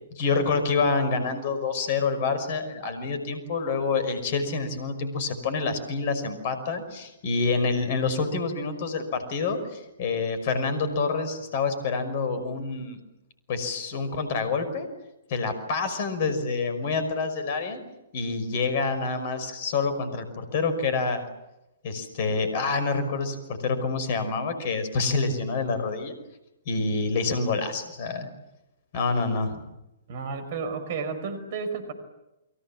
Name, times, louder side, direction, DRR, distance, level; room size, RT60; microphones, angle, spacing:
voice 1, 0.1-13.0 13.5-14.9 15.3-17.8 18.1-21.3 21.8-26.1 26.7-28.3 28.9-29.6, left 4 dB, 45° left, 11 dB, 5.6 m, -27 dB
voice 2, 30.1-31.9, right 5 dB, 45° right, 10 dB, 5.0 m, -32 dB
29.5 x 23.5 x 7.5 m, 0.94 s
figure-of-eight pair, 115°, 0 cm